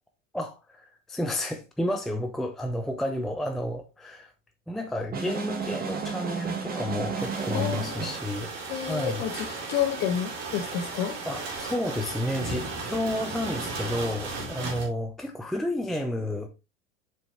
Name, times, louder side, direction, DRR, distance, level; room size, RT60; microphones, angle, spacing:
voice 1, 0.3-4.3 4.7-8.5 8.8-9.8 11.2-16.5, left 1 dB, ahead, 0.6 m, -31 dB
sound 1, 5.1-8.3, right 5 dB, 25° right, 1.6 m, -32 dB
sound 2, 7.2-14.9, right 3 dB, 50° right, 2.8 m, -35 dB
voice 2, 7.5-8.0 8.7-11.2, left 9 dB, 40° left, 1.3 m, -30 dB
7.6 x 4.7 x 3.2 m
figure-of-eight pair, 80°, 38 cm